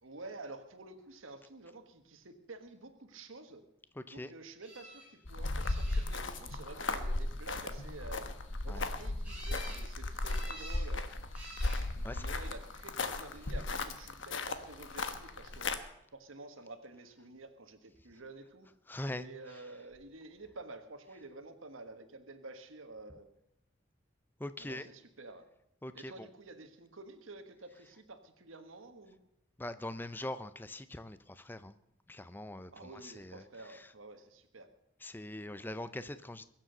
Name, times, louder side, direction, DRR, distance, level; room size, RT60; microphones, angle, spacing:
voice 1, 0.0-3.6 4.1-8.3 8.6-11.1 11.9-15.7 16.1-18.7 19.2-23.3 24.6-25.4 25.9-29.2 32.7-34.7, right 2 dB, 85° right, 8 dB, 1.4 m, -50 dB
voice 2, 4.0-4.3 8.7-8.8 12.0-12.3 18.9-19.3 24.4-24.9 25.8-26.3 29.6-31.7 32.1-33.9 35.0-36.4, left 1 dB, 10° left, 13 dB, 0.5 m, -42 dB
sound 1, 4.6-5.1 5.6-6.3 9.2-9.8 10.2-10.9 11.3-11.8 12.8-13.2 19.5-19.6 19.9-20.0, right 1 dB, 5° right, 5.7 m, -49 dB
sound 2, 5.2-15.8, left 2 dB, 70° left, 1.2 m, -36 dB
22.0 x 7.5 x 6.6 m, 0.80 s
head